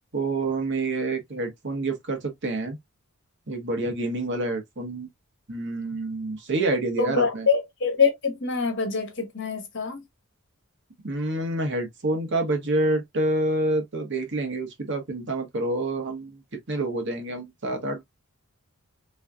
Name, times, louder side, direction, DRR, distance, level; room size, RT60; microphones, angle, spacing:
voice 1, 0.1-2.8 3.5-5.1 5.5-7.5 11.0-16.4 16.7-18.0, right 2 dB, 55° right, 1.2 m, -27 dB
voice 2, 7.0-10.0, left 5 dB, 55° left, 1.3 m, -25 dB
3.7 x 3.2 x 2.3 m
head